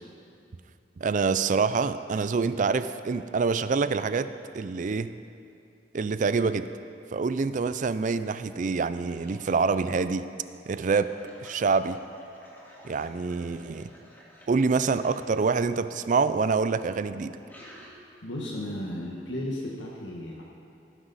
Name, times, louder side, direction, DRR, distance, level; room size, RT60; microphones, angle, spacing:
voice 1, 1.0-5.1 5.9-6.7 7.1-10.3 10.7-11.1 11.4-12.0 12.8-13.9 14.5-17.4, right 4 dB, 45° right, 12 dB, 0.4 m, -26 dB
sound 1, 9.0-9.8 10.7-15.3 16.8-17.9, equal, 10° left, 2.0 m, -52 dB
voice 2, 18.2-20.4, left 1 dB, 85° left, -2 dB, 1.3 m, -34 dB
17.0 x 9.8 x 4.1 m, 2.5 s
head